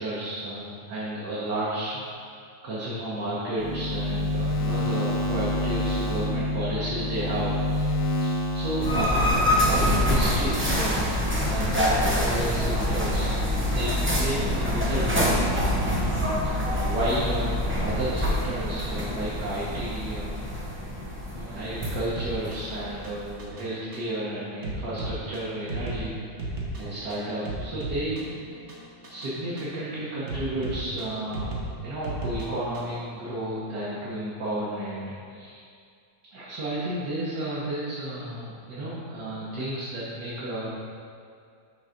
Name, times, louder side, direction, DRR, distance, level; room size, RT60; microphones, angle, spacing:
voice 1, 0.0-2.3 2.6-8.0 8.5-11.1 11.4-13.3 13.7-15.5 16.6-20.5 21.3-26.2 26.8-28.3 29.1-31.5 31.8-35.6 36.3-40.7, right 1 dB, 65° right, -9 dB, 1.8 m, -32 dB
sound 1, 3.6-9.0, left 1 dB, 80° left, 1.6 m, -27 dB
sound 2, 8.8-23.4, left 1 dB, 20° right, 0.3 m, -26 dB
sound 3, 21.8-33.0, right 2 dB, 45° right, 1.2 m, -36 dB
6.4 x 4.0 x 5.7 m, 2.3 s
omnidirectional pair, 2.0 m